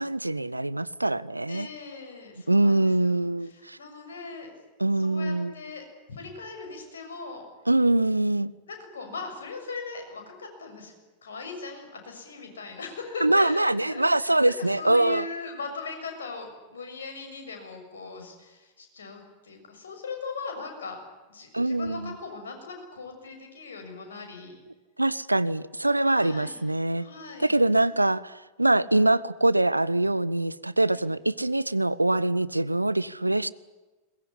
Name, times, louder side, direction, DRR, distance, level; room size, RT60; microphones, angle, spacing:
voice 1, 0.0-1.7 2.5-3.8 4.8-5.5 7.7-8.5 13.2-15.3 21.5-22.1 25.0-27.1 27.4-33.5, right 2 dB, 85° right, 20 dB, 0.7 m, -24 dB
voice 2, 1.5-3.1 3.4-4.5 5.0-7.5 8.7-10.9 11.2-21.0 21.3-24.6 26.0-26.6 27.0-27.6 30.9-31.1, left 4 dB, 70° left, 3 dB, 6.8 m, -40 dB
22.0 x 21.0 x 10.0 m, 1.2 s
figure-of-eight pair, 90°, 0 cm